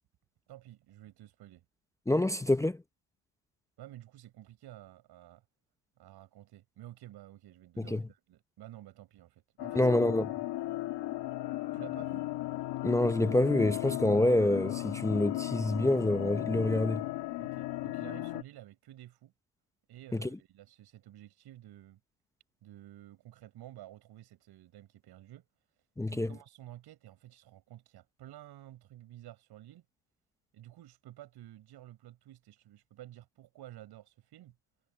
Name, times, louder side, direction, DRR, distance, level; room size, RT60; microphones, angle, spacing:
voice 1, 0.5-1.6 3.8-5.4 6.0-10.0 11.7-12.2 17.4-19.3 19.9-22.0 22.6-25.4 26.1-29.8 30.5-34.6, right 14 dB, 60° right, 6.4 m, -51 dB
voice 2, 2.1-2.8 7.8-8.0 9.8-10.2 12.8-17.1 20.2-20.3 26.0-26.3, left 1 dB, 5° left, 0.7 m, -27 dB
sound 1, 9.6-18.4, left 16 dB, 65° left, 2.3 m, -36 dB
supercardioid pair, 100°, 43 cm